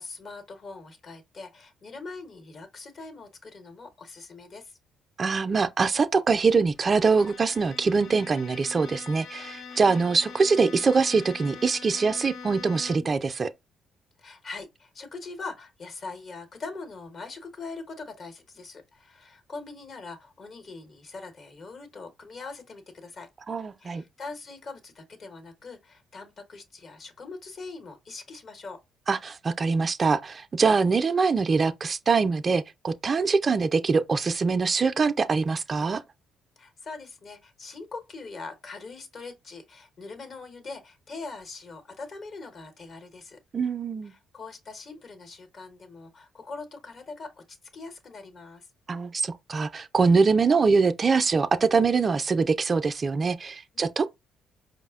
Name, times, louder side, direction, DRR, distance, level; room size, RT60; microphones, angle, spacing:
voice 1, 0.0-4.8 14.2-23.3 23.8-28.8 36.6-43.4 44.0-48.7 53.7-54.1, left 3 dB, 50° left, 1.0 m, -42 dB
voice 2, 5.2-13.5 23.5-24.0 29.1-36.0 43.5-44.1 48.9-54.1, right 4 dB, 40° right, 0.3 m, -23 dB
Bowed string instrument, 6.8-13.3, left 5 dB, 65° left, 0.5 m, -43 dB
4.8 x 2.0 x 2.3 m
supercardioid pair, 65°, 0 cm